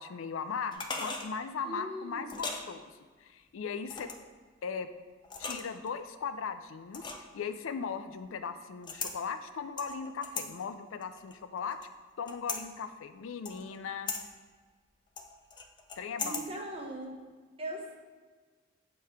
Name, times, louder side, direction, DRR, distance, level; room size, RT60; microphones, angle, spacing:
voice 1, 0.0-2.9 3.2-4.1 4.6-4.9 5.4-11.8 12.2-14.1 16.0-16.6, left 6 dB, 85° left, 10 dB, 0.4 m, -38 dB
sound 1, 0.7-1.3 2.3-2.6 3.9-4.3 5.2-5.9 6.9-7.4 8.8-9.2 9.8-10.5 11.0-11.9 12.3-12.6 13.4-13.8 14.1-14.2 15.2-16.5 16.8-16.9, left 4 dB, 25° left, 0.4 m, -38 dB
voice 2, 1.6-2.4 16.2-17.2 17.6-18.0, right 1 dB, 30° right, 0 dB, 0.9 m, -40 dB
6.6 x 3.2 x 5.6 m, 1.5 s
head